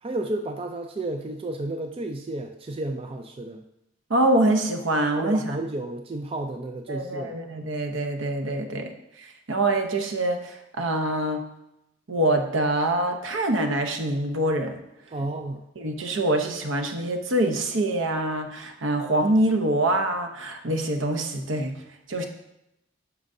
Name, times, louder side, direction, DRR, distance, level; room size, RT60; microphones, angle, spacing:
voice 1, 0.0-3.6 5.2-7.3 15.1-15.6, right 2 dB, 30° right, 5 dB, 0.4 m, -32 dB
voice 2, 4.1-5.6 6.9-8.9 9.2-11.4 12.1-14.8 15.8-21.8 22.1-22.2, right 1 dB, 70° right, 5 dB, 0.8 m, -25 dB
8.9 x 6.2 x 2.7 m, 0.85 s
head